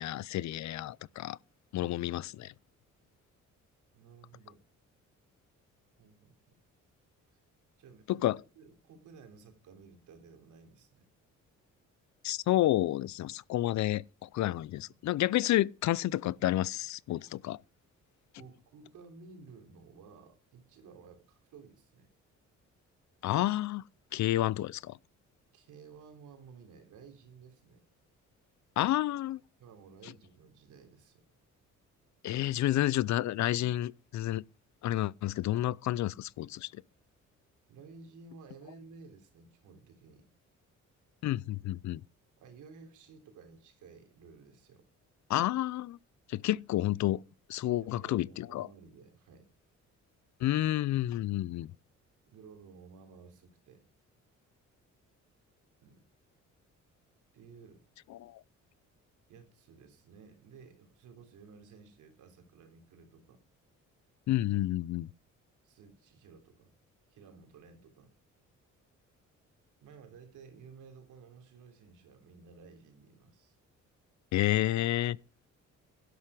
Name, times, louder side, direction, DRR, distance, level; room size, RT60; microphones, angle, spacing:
voice 1, 0.0-1.4 1.7-2.5 8.1-8.4 12.2-17.6 23.2-23.8 24.1-25.0 28.8-29.4 32.2-34.4 34.8-36.7 41.2-42.0 45.3-46.0 46.3-47.2 47.5-48.7 50.4-51.7 58.2-58.3 64.3-65.1 74.3-75.2, left 14 dB, 70° left, 0.6 m, -30 dB
voice 2, 3.9-4.6 6.0-6.5 7.8-11.1 14.4-15.0 18.3-22.1 25.5-27.8 29.6-31.3 37.7-40.3 42.4-44.9 47.6-49.5 52.3-53.9 55.8-56.0 57.3-57.8 59.3-63.4 65.6-66.7 67.1-68.1 69.8-73.6, right 5 dB, 80° right, 3.4 m, -55 dB
12.0 x 11.5 x 4.9 m
cardioid pair, 90°, 30 cm